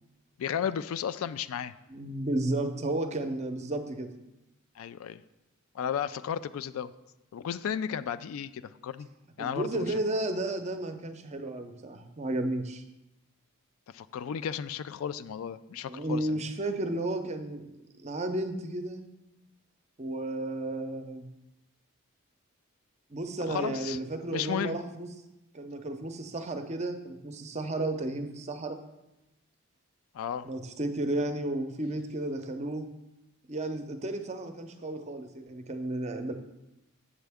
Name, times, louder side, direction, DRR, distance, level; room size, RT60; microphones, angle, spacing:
voice 1, 0.4-1.7 4.8-5.2 5.7-6.9 7.3-9.1 9.4-9.9 13.9-16.4 23.5-24.0 24.3-24.8 30.1-30.5, left 8 dB, 70° left, 15 dB, 0.3 m, -34 dB
voice 2, 1.9-4.1 9.4-12.8 15.9-17.7 18.0-19.1 20.0-21.3 23.1-25.1 25.5-28.8 30.4-32.9 33.5-36.3, right 1 dB, 30° right, 7 dB, 0.6 m, -33 dB
7.6 x 7.2 x 3.5 m, 0.94 s
head